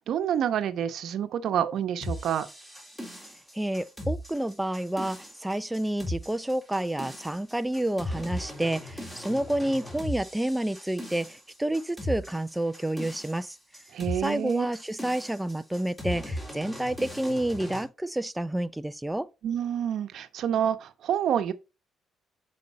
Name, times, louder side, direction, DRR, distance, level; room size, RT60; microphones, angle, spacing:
voice 1, 0.0-2.5 13.9-14.7 19.4-21.5, right 9 dB, 70° right, 0.9 m, -28 dB
sound 1, 2.0-17.8, left 1 dB, 10° left, 3.5 m, -38 dB
voice 2, 3.5-13.6 14.2-19.3, right 1 dB, 10° right, 0.4 m, -29 dB
8.2 x 5.2 x 4.2 m
cardioid pair, 85°, 0 cm